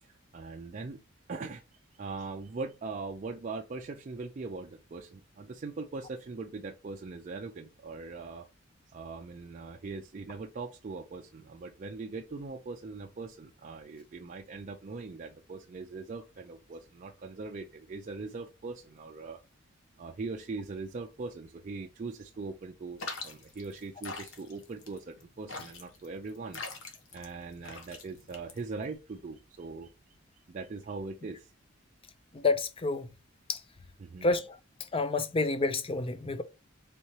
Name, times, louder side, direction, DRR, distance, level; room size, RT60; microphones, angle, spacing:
voice 1, 0.0-1.0 1.3-1.6 2.0-8.5 8.9-19.4 20.0-26.6 27.1-29.9 30.5-31.5 34.0-34.3, right 3 dB, 40° right, 0.4 m, -41 dB
sound 1, 23.0-29.0, left 3 dB, 70° left, 1.0 m, -43 dB
voice 2, 32.3-33.1 33.5-33.6 34.2-34.6 34.9-36.4, left 3 dB, 25° left, 0.4 m, -29 dB
4.3 x 3.6 x 3.0 m
head